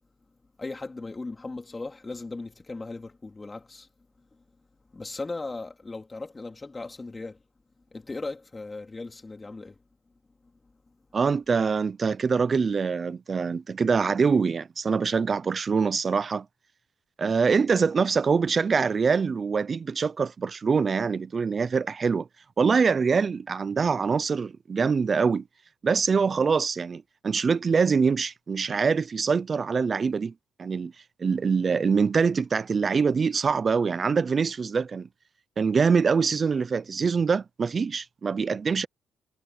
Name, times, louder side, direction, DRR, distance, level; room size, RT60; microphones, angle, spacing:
voice 1, 0.6-3.9 4.9-7.4 7.9-9.8, left 3 dB, 25° left, 2.6 m, -37 dB
voice 2, 11.1-16.5 17.2-22.3 22.6-25.4 25.8-30.3 30.6-30.9 31.2-35.1 35.6-38.9, right 5 dB, 40° right, 0.6 m, -24 dB
cardioid pair, 90°, 0 cm